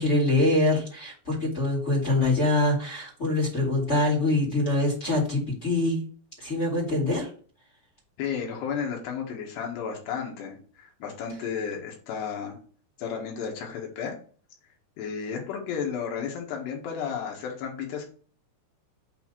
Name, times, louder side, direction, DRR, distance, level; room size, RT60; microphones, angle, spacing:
voice 1, 0.0-6.0 6.4-7.3, left 2 dB, 25° left, -2 dB, 1.6 m, -24 dB
voice 2, 8.2-12.6 13.0-14.1 15.0-18.1, left 7 dB, 80° left, 1 dB, 3.7 m, -33 dB
8.2 x 2.8 x 6.1 m, 0.43 s
omnidirectional pair, 4.8 m